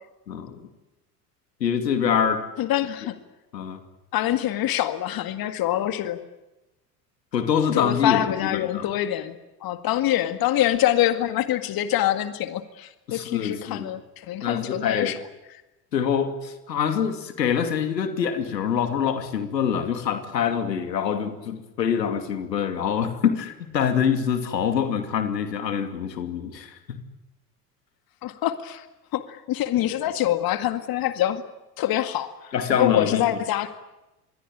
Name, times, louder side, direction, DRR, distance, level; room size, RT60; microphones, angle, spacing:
voice 1, 0.3-0.6 1.6-2.5 3.5-3.8 7.3-8.9 13.1-13.9 14.4-15.2 15.9-27.0 32.5-33.4, left 7 dB, 85° left, 8 dB, 2.7 m, -25 dB
voice 2, 2.6-3.1 4.1-6.2 7.7-9.4 9.6-15.2 28.2-28.9 29.1-31.4 31.8-33.7, left 12 dB, 45° left, 10 dB, 2.0 m, -25 dB
27.0 x 21.5 x 8.8 m, 1.0 s
hypercardioid pair, 75°, 49 cm